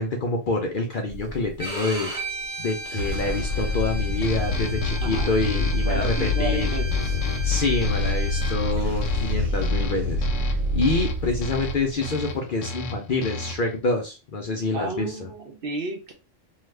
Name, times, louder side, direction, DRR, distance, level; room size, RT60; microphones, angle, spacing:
voice 1, 0.0-2.1 2.6-6.7 7.4-15.3, left 3 dB, 55° left, 1 dB, 0.6 m, -27 dB
sound 1, 1.1-1.8 2.8-12.1, left 2 dB, 85° right, 1.2 m, -26 dB
Bowed string instrument, 1.6-8.6, right 2 dB, 30° right, 1.0 m, -36 dB
sound 2, 4.2-13.8, left 2 dB, 80° left, 1.0 m, -35 dB
voice 2, 5.0-5.3 5.9-7.2 14.7-16.1, right 3 dB, 60° right, 2 dB, 0.7 m, -32 dB
2.8 x 2.4 x 3.2 m, 0.30 s
omnidirectional pair, 1.3 m